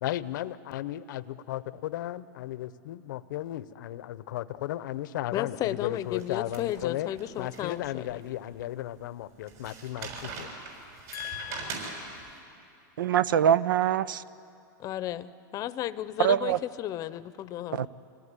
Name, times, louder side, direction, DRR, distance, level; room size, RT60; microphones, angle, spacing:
voice 1, 0.0-7.1 7.4-10.5, left 13 dB, 70° left, 15 dB, 0.8 m, -35 dB
voice 2, 5.3-8.2 11.1-12.4 14.8-17.9, left 13 dB, 35° left, 15 dB, 0.8 m, -34 dB
sound 1, 6.1-8.2 8.6-8.7 9.5-12.3, right 4 dB, 55° right, 6.9 m, -41 dB
voice 3, 13.0-14.2 16.2-16.6 17.7-17.9, right 9 dB, 85° right, 17 dB, 0.7 m, -24 dB
25.5 x 18.0 x 9.8 m, 2.6 s
hypercardioid pair, 130°, 11 cm